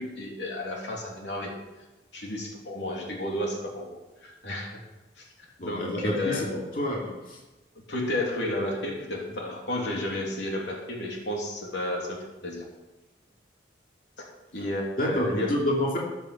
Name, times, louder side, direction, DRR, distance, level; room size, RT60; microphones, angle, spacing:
voice 1, 0.0-1.5 2.1-4.8 5.2-5.3 5.6-6.6 7.9-12.6 14.2-14.3 14.5-15.6, left 1 dB, 75° left, -1 dB, 3.1 m, -32 dB
voice 2, 5.6-7.4 15.0-16.0, left 1 dB, 50° left, -3 dB, 2.8 m, -28 dB
13.5 x 10.5 x 5.8 m, 1.1 s
head